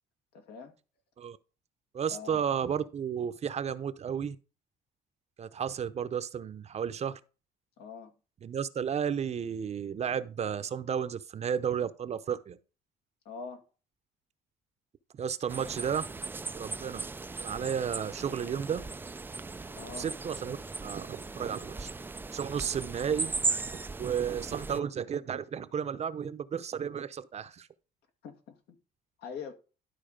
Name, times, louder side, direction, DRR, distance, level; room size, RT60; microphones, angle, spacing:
voice 1, 0.3-0.7 2.1-2.4 7.8-8.1 13.3-13.6 19.8-20.1 28.2-28.6 29.2-29.5, left 5 dB, 75° left, 2.0 m, -43 dB
voice 2, 1.9-4.4 5.4-7.2 8.4-12.6 15.1-16.1 16.5-17.0 17.4-18.8 20.0-21.9 22.3-23.3 24.0-27.7, right 8 dB, 40° right, 0.7 m, -33 dB
sound 1, 15.5-24.8, right 3 dB, 10° right, 0.4 m, -37 dB
12.5 x 4.2 x 5.1 m
cardioid pair, 110°, 17 cm